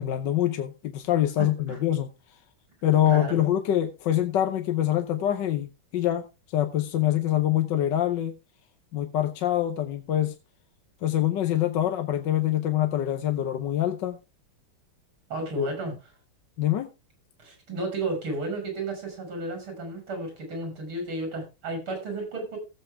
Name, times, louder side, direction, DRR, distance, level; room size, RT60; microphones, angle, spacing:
voice 1, 0.0-2.1 2.8-6.2 6.5-8.3 8.9-10.3 11.0-14.2 15.6-15.7 16.6-16.9, left 12 dB, 65° left, 1.4 m, -25 dB
voice 2, 3.1-3.4 15.3-15.9 17.4-22.6, right 2 dB, 70° right, 6.8 m, -33 dB
16.0 x 7.9 x 3.5 m
omnidirectional pair, 2.4 m